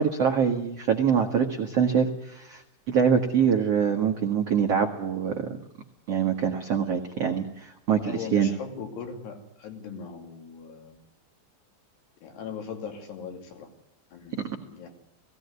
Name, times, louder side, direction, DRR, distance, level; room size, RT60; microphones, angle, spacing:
voice 1, 0.0-2.6 2.9-5.5 6.1-8.5, right 7 dB, 70° right, 3 dB, 1.4 m, -24 dB
voice 2, 7.9-11.0 12.2-13.7 14.1-14.9, left 6 dB, 65° left, 4 dB, 4.6 m, -39 dB
19.0 x 17.0 x 9.6 m, 0.81 s
omnidirectional pair, 5.3 m